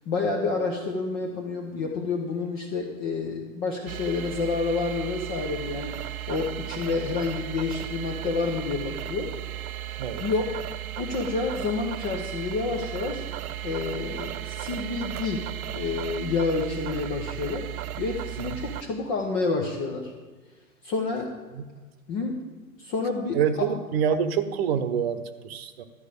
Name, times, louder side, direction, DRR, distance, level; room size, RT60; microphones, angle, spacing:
voice 1, 0.1-9.4 10.2-13.3 13.6-20.1 20.8-21.4 22.1-22.4 22.8-23.7, left 4 dB, 15° left, 1 dB, 0.4 m, -29 dB
sound 1, 3.9-18.8, right 12 dB, 70° right, 0.6 m, -35 dB
voice 2, 23.3-25.8, right 7 dB, 45° right, 11 dB, 1.0 m, -26 dB
12.5 x 4.9 x 8.2 m, 1.3 s
figure-of-eight pair, 120°, 45 cm